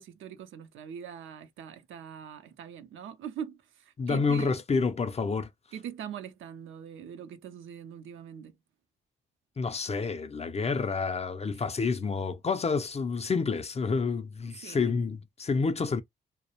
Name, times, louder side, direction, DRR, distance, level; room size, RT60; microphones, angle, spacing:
voice 1, 0.0-4.5 5.7-8.6 14.6-15.0, right 8 dB, 75° right, 0.5 m, -42 dB
voice 2, 4.0-5.5 9.6-16.0, left 4 dB, 30° left, 0.5 m, -29 dB
2.3 x 2.0 x 2.8 m
supercardioid pair, 45°, 20 cm